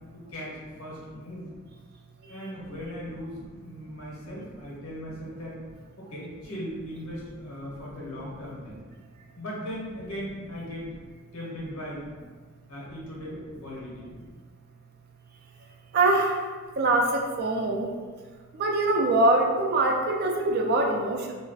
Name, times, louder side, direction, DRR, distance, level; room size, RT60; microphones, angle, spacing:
voice 1, 0.1-1.5 2.3-5.6 6.0-8.8 9.4-10.9 11.3-12.1 12.7-14.1, equal, 75° left, -4 dB, 0.9 m, -38 dB
voice 2, 15.9-16.3 16.8-17.9 18.6-21.3, right 2 dB, 50° right, 1 dB, 0.4 m, -23 dB
2.3 x 2.0 x 3.8 m, 1.5 s
head